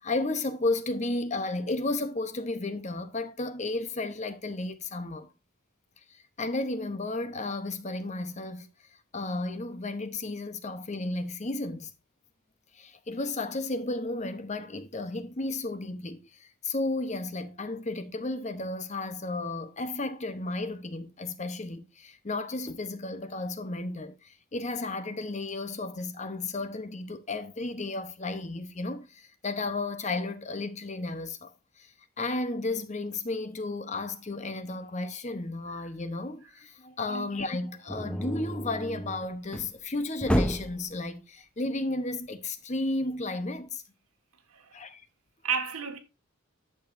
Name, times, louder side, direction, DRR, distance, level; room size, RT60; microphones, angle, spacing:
voice 1, 0.0-5.3 6.1-8.7 9.1-11.9 12.7-43.8 44.7-45.0, left 2 dB, 30° left, 0.9 m, -33 dB
sound 1, 37.9-39.8 40.2-40.8, equal, 5° left, 0.7 m, -30 dB
voice 2, 44.5-44.8 45.4-46.0, right 6 dB, 85° right, 1.7 m, -33 dB
11.0 x 6.9 x 2.6 m
head